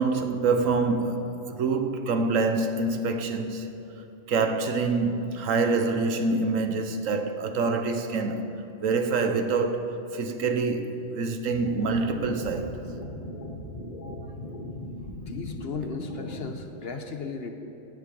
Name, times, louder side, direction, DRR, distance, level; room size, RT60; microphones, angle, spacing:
voice 1, 0.0-3.7 4.3-8.5 8.8-12.8, right 3 dB, 75° right, 1.2 m, -26 dB
sound 1, 11.5-16.5, left 1 dB, 35° left, 1.3 m, -38 dB
voice 2, 15.0-17.5, left 4 dB, 50° left, 1.0 m, -36 dB
16.5 x 10.5 x 5.3 m
omnidirectional pair, 1.4 m